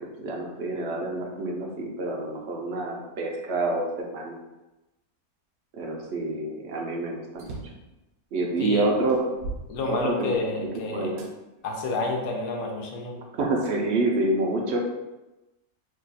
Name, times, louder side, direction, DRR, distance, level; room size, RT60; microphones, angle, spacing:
voice 1, 0.0-4.4 5.8-7.6 8.3-9.2 9.9-10.3 10.9-11.2 13.3-14.8, right 2 dB, 60° right, 0 dB, 0.7 m, -27 dB
sound 1, 7.4-7.9 8.5-8.6 9.1-10.5 11.2-11.3 12.0-13.1, right 3 dB, 80° right, 1.0 m, -40 dB
voice 2, 9.7-11.1 11.6-13.2, left 2 dB, 85° left, 1 dB, 1.1 m, -29 dB
2.8 x 2.3 x 4.0 m, 1.0 s
omnidirectional pair, 1.5 m